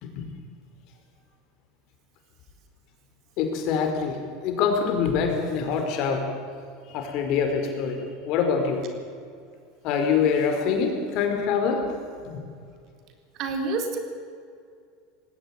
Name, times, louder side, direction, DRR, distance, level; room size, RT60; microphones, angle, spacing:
voice 1, 3.4-4.2 4.4-6.3 6.9-8.8 9.8-11.9, left 6 dB, 60° left, 4 dB, 4.6 m, -25 dB
voice 2, 13.3-14.0, right 3 dB, 55° right, 5 dB, 4.0 m, -28 dB
19.5 x 16.5 x 8.9 m, 2.2 s
supercardioid pair, 105°, 0 cm